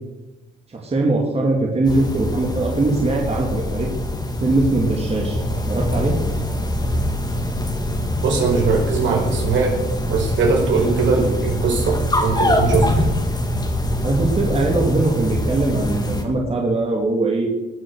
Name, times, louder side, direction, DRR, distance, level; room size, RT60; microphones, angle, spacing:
voice 1, 0.7-3.9 4.4-5.4 5.7-6.1 14.0-17.5, right 2 dB, 30° right, -1 dB, 2.7 m, -21 dB
sound 1, 1.8-16.2, left 1 dB, 20° left, 2.3 m, -23 dB
voice 2, 8.2-9.8 10.1-13.0, right 4 dB, 70° right, -1 dB, 5.2 m, -20 dB
19.5 x 6.5 x 6.4 m, 1.1 s
cardioid pair, 90°, 20 cm